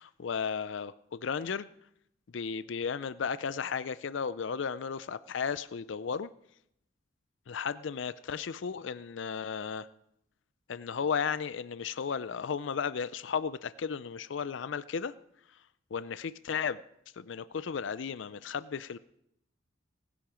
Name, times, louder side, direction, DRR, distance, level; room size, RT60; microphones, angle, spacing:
voice 1, 0.0-1.7 2.3-6.3 7.5-9.9 10.7-15.1 15.9-16.8 17.2-19.0, left 6 dB, 75° left, 16 dB, 0.5 m, -34 dB
19.0 x 10.0 x 5.1 m, 0.78 s
head